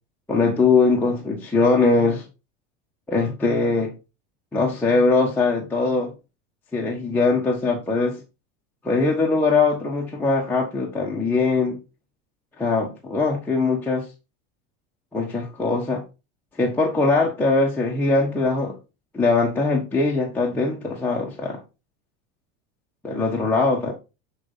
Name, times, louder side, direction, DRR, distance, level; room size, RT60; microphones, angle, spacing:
voice 1, 0.3-2.2 3.1-3.9 4.5-6.1 6.7-8.2 8.8-11.8 12.6-14.1 15.1-16.0 16.6-18.8 19.1-21.6 23.0-23.9, left 3 dB, 5° left, 1.2 m, -21 dB
10.5 x 4.2 x 3.9 m
supercardioid pair, 135°, 30 cm